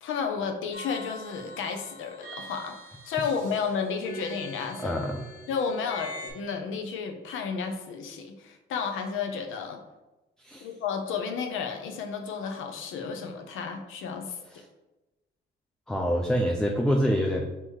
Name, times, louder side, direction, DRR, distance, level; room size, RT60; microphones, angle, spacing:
voice 1, 0.0-2.7 3.0-4.9 5.5-9.8 10.6-14.4, left 6 dB, 85° left, 4 dB, 0.7 m, -32 dB
sound 1, 0.7-6.3, left 1 dB, 45° left, 1.5 m, -43 dB
voice 2, 4.8-5.3 10.4-10.7 14.5-14.6 15.9-17.4, equal, 5° left, 1 dB, 0.4 m, -26 dB
4.4 x 2.9 x 3.6 m, 1.1 s
cardioid pair, 90°, 20 cm